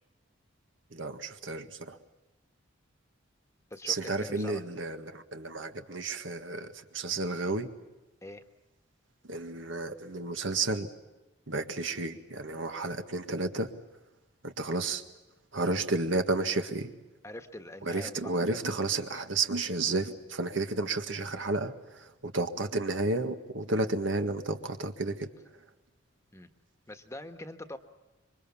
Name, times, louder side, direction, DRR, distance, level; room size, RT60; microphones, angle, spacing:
voice 1, 0.9-2.0 3.9-7.7 9.2-10.9 11.5-13.7 14.4-15.0 15.5-16.9 17.8-25.6, right 3 dB, 70° right, 7 dB, 1.8 m, -32 dB
voice 2, 3.7-4.6 8.2-8.4 17.2-18.6 26.3-26.5 26.9-27.8, left 1 dB, 15° left, 8 dB, 1.4 m, -43 dB
27.0 x 24.0 x 7.2 m, 1.1 s
head